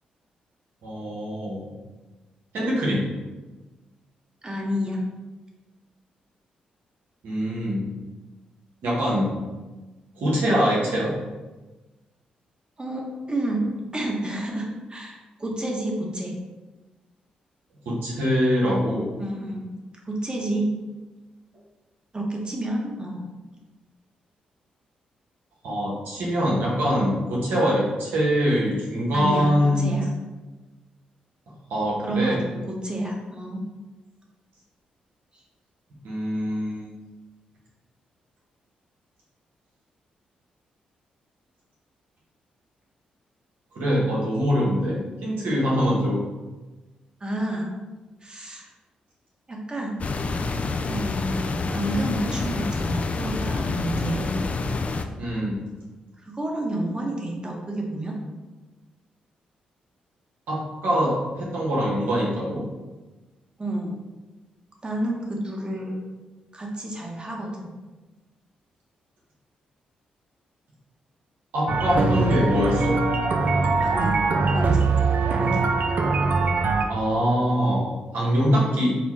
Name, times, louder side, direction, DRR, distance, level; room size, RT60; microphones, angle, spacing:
voice 1, 0.8-1.7 2.5-3.1 7.2-7.9 8.8-9.4 10.2-11.1 17.8-19.1 25.6-29.9 31.7-32.4 36.0-36.9 43.7-46.2 55.2-55.6 60.5-62.7 71.5-73.0 76.9-79.0, equal, 80° right, -5 dB, 1.2 m, -23 dB
voice 2, 4.4-5.0 12.8-16.3 19.2-19.7 20.0-20.7 22.1-23.3 29.1-30.1 32.0-33.6 47.2-47.7 48.2-48.7 49.5-50.0 50.9-54.3 56.2-58.2 63.6-63.9 64.8-66.0 66.5-67.7 73.8-74.2 74.5-74.9 75.3-75.7, right 1 dB, 30° right, 0 dB, 1.1 m, -29 dB
sound 1, 50.0-55.1, left 3 dB, 45° left, 0.4 m, -27 dB
sound 2, 71.7-76.9, right 3 dB, 60° right, 0.4 m, -22 dB
4.2 x 2.3 x 4.2 m, 1.2 s
supercardioid pair, 50°, 3 cm